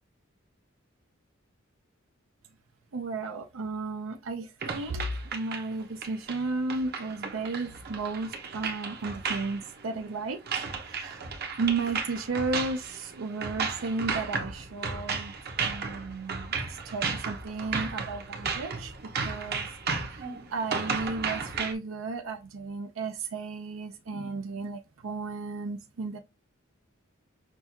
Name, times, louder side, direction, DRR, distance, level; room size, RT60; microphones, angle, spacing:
voice 1, 2.9-11.2 11.6-15.3 15.6-19.7 20.1-26.2, right 3 dB, 80° right, 0.5 m, -34 dB
sound 1, 4.6-21.7, right 5 dB, 50° right, 0.8 m, -34 dB
6.1 x 2.3 x 2.7 m
head